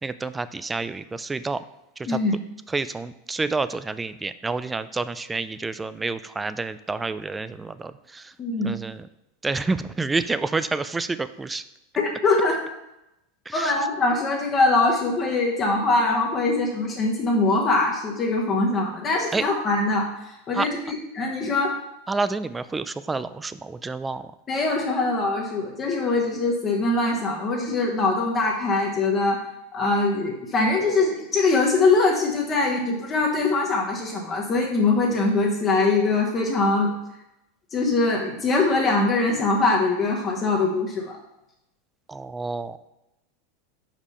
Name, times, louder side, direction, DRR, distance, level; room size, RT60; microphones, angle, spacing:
voice 1, 0.0-1.6 2.0-2.2 2.7-8.3 8.6-9.1 9.4-11.6 13.5-13.8 19.3-19.5 20.5-20.7 22.1-24.3 42.1-42.8, right 3 dB, 10° right, 14 dB, 0.3 m, -29 dB
voice 2, 8.4-8.7 12.0-12.6 13.5-21.7 24.5-29.4 29.7-36.9 37.7-41.2, left 3 dB, 25° left, -1 dB, 1.1 m, -22 dB
5.2 x 5.1 x 5.5 m, 0.90 s
supercardioid pair, 125°, 0 cm